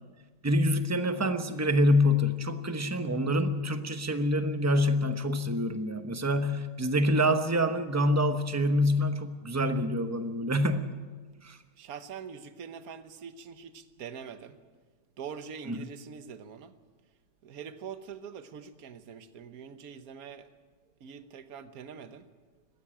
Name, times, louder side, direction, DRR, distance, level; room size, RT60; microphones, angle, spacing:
voice 1, 0.4-11.0 11.4-11.6 15.7-15.8, left 1 dB, 15° right, 8 dB, 0.7 m, -26 dB
voice 2, 11.8-14.6 15.2-16.7 17.4-20.5 21.0-22.3, right 7 dB, 60° right, 10 dB, 1.5 m, -44 dB
21.5 x 15.0 x 8.7 m, 1.4 s
omnidirectional pair, 1.8 m